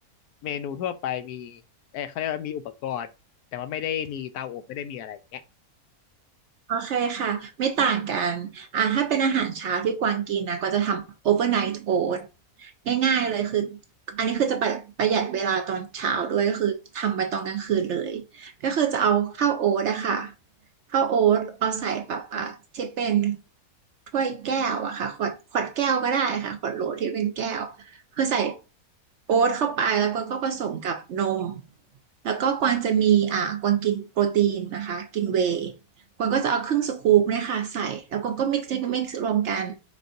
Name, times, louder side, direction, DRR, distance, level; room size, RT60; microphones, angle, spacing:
voice 1, 0.4-1.6 1.9-3.1 3.5-5.4, left 10 dB, 90° left, 1.1 m, -32 dB
voice 2, 6.7-12.3 12.6-13.8 14.1-20.3 20.9-23.4 24.1-28.6 29.3-31.6 32.2-35.7 36.2-39.8, right 8 dB, 65° right, 0.7 m, -25 dB
4.9 x 4.2 x 2.6 m
omnidirectional pair, 1.6 m